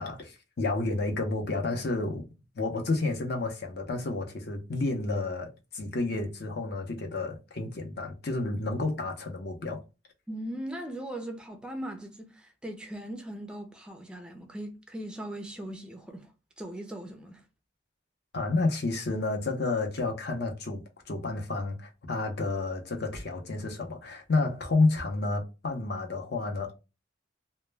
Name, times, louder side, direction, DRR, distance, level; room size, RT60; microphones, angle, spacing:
voice 1, 0.0-2.2 2.5-9.8 18.3-20.8 21.1-26.7, left 3 dB, 55° left, 0.6 m, -30 dB
voice 2, 10.3-16.3 16.6-17.4, right 1 dB, 5° right, 0.4 m, -39 dB
2.1 x 2.1 x 3.2 m
head